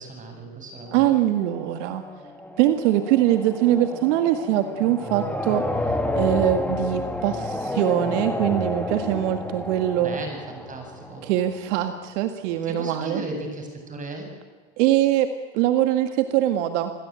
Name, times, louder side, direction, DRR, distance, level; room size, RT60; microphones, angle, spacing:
voice 1, 0.0-1.1 10.0-11.3 12.6-14.3, right 2 dB, 20° right, 4 dB, 7.9 m, -36 dB
sound 1, 0.9-11.8, left 1 dB, 5° left, 2.7 m, -31 dB
voice 2, 0.9-2.0 2.6-5.9 6.2-10.2 11.2-13.2 14.8-16.9, right 12 dB, 70° right, 8 dB, 2.0 m, -22 dB
28.5 x 21.0 x 9.0 m, 1.4 s
supercardioid pair, 125°, 37 cm